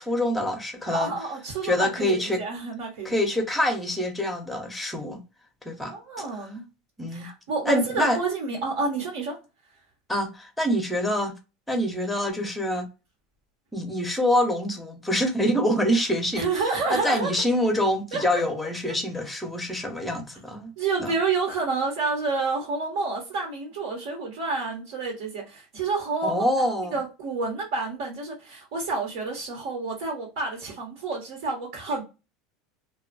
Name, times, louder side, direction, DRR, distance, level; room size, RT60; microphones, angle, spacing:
voice 1, 0.0-1.1 1.6-2.4 3.0-5.2 5.6-5.9 7.0-7.3 7.7-8.2 10.1-11.3 11.7-12.9 13.7-16.5 16.9-20.7 21.0-21.1 26.2-27.0, left 1 dB, 5° left, 0.7 m, -25 dB
voice 2, 0.9-3.2 5.9-6.6 7.1-9.3 16.3-17.4 18.1-18.4 20.8-26.4 26.9-32.0, right 3 dB, 75° right, 1.2 m, -29 dB
2.8 x 2.3 x 2.5 m
supercardioid pair, 150°, 0 cm